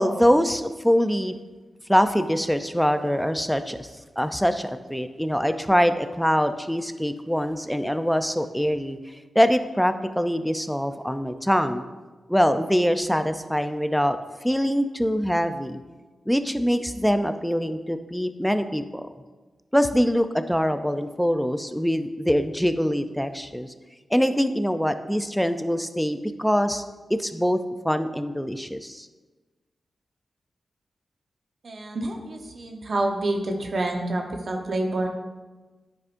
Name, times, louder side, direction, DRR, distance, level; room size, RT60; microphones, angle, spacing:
voice 1, 0.0-1.4 1.9-3.9 4.2-9.0 9.4-11.8 12.3-14.2 14.4-15.8 16.3-19.0 19.7-23.7 24.1-26.8 27.1-27.6 27.8-29.1, equal, ahead, 9 dB, 0.5 m, -23 dB
voice 2, 31.6-35.1, right 2 dB, 65° right, 3 dB, 1.0 m, -28 dB
9.5 x 4.9 x 2.6 m, 1.3 s
cardioid pair, 50°, 0 cm